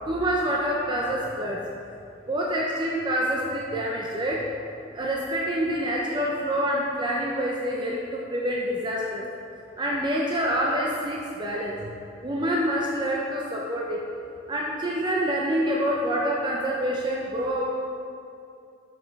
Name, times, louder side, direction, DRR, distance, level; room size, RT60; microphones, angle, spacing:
voice 1, 0.1-1.6 2.3-4.7 4.9-9.2 9.8-11.9 12.2-14.0 14.5-17.7, equal, 25° right, -3 dB, 0.5 m, -27 dB
6.0 x 5.2 x 4.6 m, 2.6 s
head